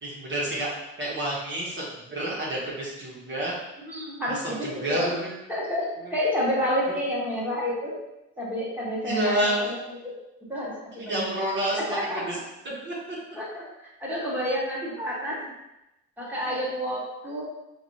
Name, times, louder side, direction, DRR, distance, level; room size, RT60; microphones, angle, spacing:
voice 1, 0.0-0.7 1.0-3.5 4.3-5.3 6.0-6.1 9.0-9.7 11.1-12.4 12.8-13.2 15.2-15.5 16.4-16.6, right 1 dB, 40° right, -6 dB, 1.1 m, -29 dB
voice 2, 3.9-5.1 5.5-5.8 6.1-8.0 8.4-9.7 10.0-10.1 10.5-11.3 11.7-12.2 13.4-13.6 14.0-15.4 16.2-17.4, equal, 5° right, -6 dB, 1.3 m, -29 dB
4.8 x 2.6 x 2.8 m, 0.92 s
cardioid pair, 90°, 30 cm